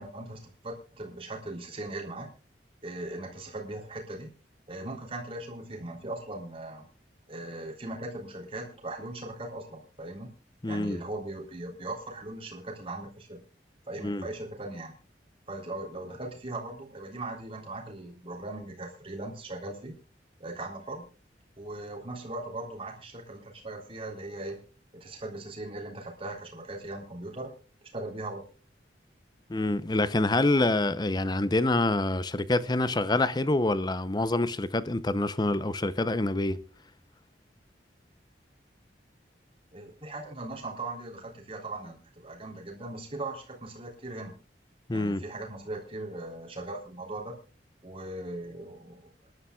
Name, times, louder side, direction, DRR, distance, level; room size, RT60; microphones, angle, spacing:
voice 1, 0.0-2.3 2.8-4.3 4.7-6.9 7.3-10.3 10.7-13.4 13.9-14.9 15.5-19.9 20.4-21.1 21.6-24.6 24.9-27.5 27.9-28.5 39.7-44.4 44.9-47.4 47.8-49.1, right 2 dB, 30° right, 3.5 m, -39 dB
voice 2, 10.6-11.0 14.0-14.3 29.5-36.6 44.9-45.2, left 2 dB, 25° left, 0.7 m, -26 dB
27.0 x 11.5 x 2.4 m
head